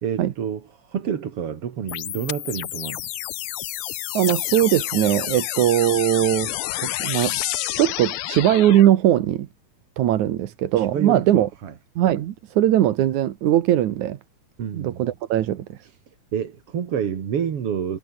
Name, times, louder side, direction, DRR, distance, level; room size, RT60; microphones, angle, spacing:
voice 1, 0.0-3.0 10.8-11.7 14.6-15.1 16.3-18.0, right 8 dB, 55° right, 2.8 m, -28 dB
sound 1, 1.9-8.9, left 14 dB, 80° left, 1.2 m, -29 dB
voice 2, 4.1-6.5 6.8-7.4 7.7-9.5 10.0-11.5 12.0-14.2 14.7-15.8, right 12 dB, 80° right, 2.7 m, -20 dB
omnidirectional pair, 3.4 m